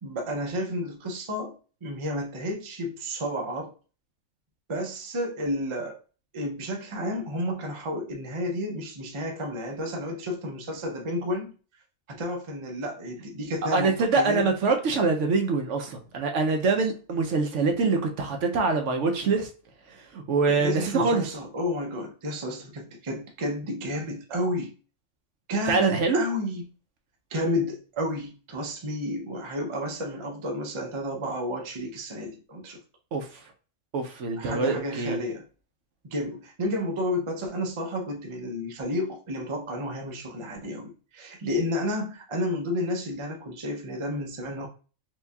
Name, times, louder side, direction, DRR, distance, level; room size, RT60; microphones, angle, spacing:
voice 1, 0.0-3.7 4.7-6.0 6.3-11.5 12.1-14.5 20.5-24.7 25.5-26.6 27.3-32.8 34.4-35.4 36.0-44.7, left 1 dB, 40° right, 0.4 m, -31 dB
voice 2, 13.7-19.5 20.1-21.3 25.7-26.2 33.1-33.3 33.9-35.2, right 4 dB, 65° right, 0.9 m, -24 dB
4.6 x 2.7 x 2.3 m
omnidirectional pair, 1.4 m